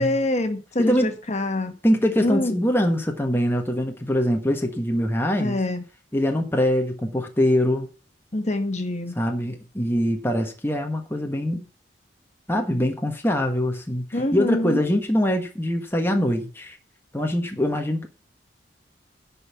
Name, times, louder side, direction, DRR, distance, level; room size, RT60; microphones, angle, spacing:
voice 1, 0.0-1.8 2.2-2.6 5.4-5.8 8.3-9.1 14.1-14.9, left 1 dB, 40° left, 1.5 m, -25 dB
voice 2, 0.8-1.1 1.8-5.6 6.1-7.9 9.2-11.7 12.5-14.1 14.3-16.8 17.1-18.1, equal, 15° left, 1.3 m, -23 dB
11.0 x 5.5 x 7.0 m
head